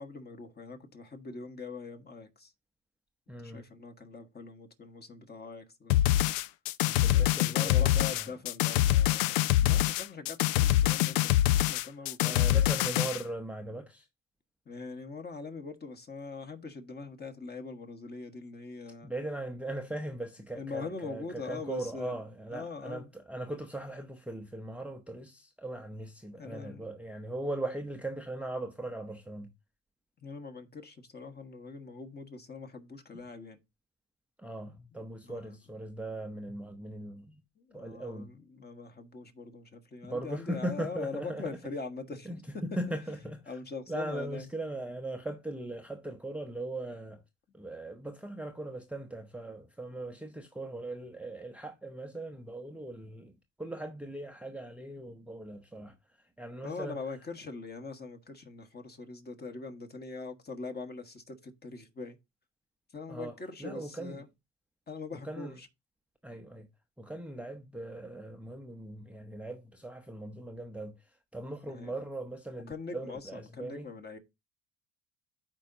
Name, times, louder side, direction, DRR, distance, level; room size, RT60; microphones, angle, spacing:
voice 1, 0.0-2.5 3.4-6.0 7.1-12.6 14.6-19.1 20.5-22.2 22.5-23.1 26.3-26.9 30.2-33.6 35.2-35.6 37.6-42.6 43.5-44.5 56.6-62.2 62.9-64.3 64.9-65.7 71.6-71.9 72.7-74.2, left 4 dB, 25° left, 1.4 m, -42 dB
voice 2, 3.3-3.6 6.8-8.3 9.6-9.8 12.2-14.1 19.0-29.5 34.4-37.4 37.7-38.3 40.0-41.6 42.3-43.6 43.9-47.2 47.5-57.0 63.1-64.2 65.1-65.6 66.2-66.7 67.0-73.9, right 1 dB, 5° right, 0.7 m, -39 dB
sound 1, 5.9-13.2, left 13 dB, 75° left, 0.5 m, -25 dB
12.5 x 4.5 x 2.7 m
hypercardioid pair, 75°, 38 cm